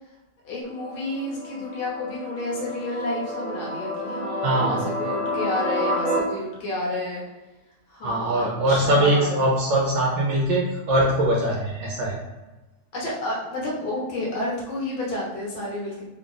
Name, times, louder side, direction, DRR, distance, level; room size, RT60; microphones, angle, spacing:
voice 1, 0.4-7.2 7.9-9.4 12.9-16.0, left 1 dB, 65° left, -4 dB, 1.8 m, -30 dB
sound 1, 0.6-6.2, equal, 40° right, 0.7 m, -30 dB
voice 2, 4.4-4.9 8.0-12.1, right 1 dB, 70° right, -2 dB, 1.2 m, -22 dB
3.9 x 2.4 x 3.9 m, 1.1 s
omnidirectional pair, 2.4 m